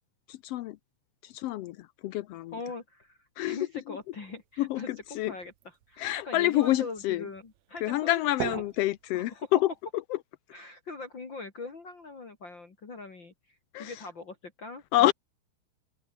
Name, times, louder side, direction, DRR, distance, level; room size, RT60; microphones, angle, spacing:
voice 1, 0.3-0.8 1.2-2.6 3.4-4.0 4.6-5.3 6.0-7.3 7.8-9.7 10.1-10.2 13.7-14.0 14.9-15.1, left 15 dB, 85° left, 1.4 m, -28 dB
voice 2, 2.5-4.9 5.3-5.5 5.9-8.5 9.1-9.5 10.5-14.8, left 3 dB, 35° left, 3.4 m, -41 dB
sound 1, 4.0-9.8, right 14 dB, 70° right, 2.2 m, -43 dB
omnidirectional pair, 3.6 m